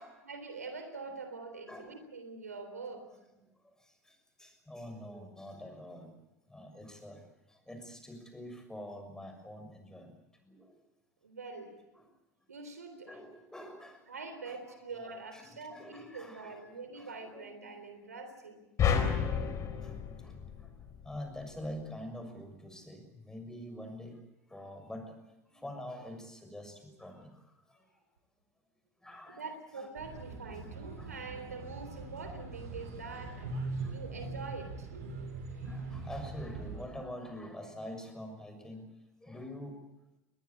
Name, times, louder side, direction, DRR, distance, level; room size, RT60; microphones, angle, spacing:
voice 1, 0.2-3.1 11.2-11.7 12.5-13.1 14.1-18.6 29.3-33.5 33.9-35.0, right 4 dB, 90° right, 8 dB, 3.7 m, -44 dB
voice 2, 3.6-6.1 6.5-10.8 11.9-12.1 13.1-14.0 14.5-17.8 19.8-20.8 21.0-24.2 24.5-25.2 25.4-28.0 29.0-29.9 31.0-31.1 33.7-34.3 35.6-38.9 39.2-39.8, left 1 dB, 5° left, 7 dB, 6.5 m, -46 dB
sound 1, 18.8-21.2, left 7 dB, 40° left, 4.5 m, -31 dB
sound 2, 29.9-36.8, right 3 dB, 70° right, 7.7 m, -41 dB
22.5 x 20.0 x 8.6 m, 0.95 s
hypercardioid pair, 85°, 8 cm